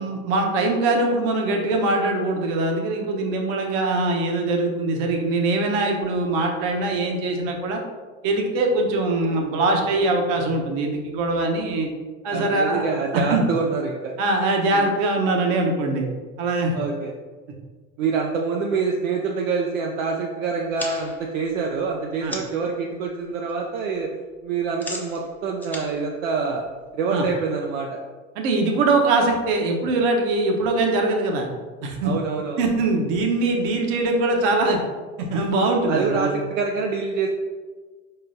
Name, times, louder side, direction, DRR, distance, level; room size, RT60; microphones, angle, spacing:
voice 1, 0.0-7.8 8.2-11.9 12.2-12.9 13.1-13.4 14.2-16.1 16.4-16.7 22.2-22.3 27.1-27.2 28.3-31.5 31.8-32.1 32.6-34.8 35.2-36.3, right 2 dB, 60° right, 2 dB, 1.0 m, -22 dB
voice 2, 12.3-14.1 14.7-14.9 16.7-17.1 18.0-24.1 24.4-26.6 26.9-27.9 32.0-32.6 35.9-37.3, right 5 dB, 75° right, 0 dB, 0.6 m, -26 dB
sound 1, 20.6-22.7 23.1-23.5 23.8-27.1, left 1 dB, 5° left, 0.5 m, -38 dB
4.4 x 3.8 x 2.6 m, 1.4 s
hypercardioid pair, 85°, 40 cm